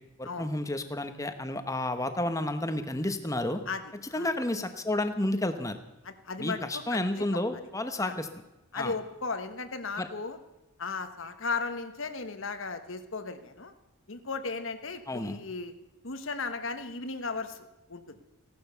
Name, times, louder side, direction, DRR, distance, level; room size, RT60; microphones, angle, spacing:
voice 1, 0.2-3.6 4.1-5.8 6.4-8.3 8.7-8.9 10.0-10.1 15.1-15.4, left 1 dB, 15° left, 8 dB, 1.1 m, -31 dB
voice 2, 6.0-7.2 8.0-8.1 8.7-10.4 10.8-13.7 14.1-15.7 16.0-17.6 17.9-18.2, left 4 dB, 60° left, 9 dB, 1.3 m, -36 dB
16.5 x 12.0 x 6.8 m, 1.0 s
head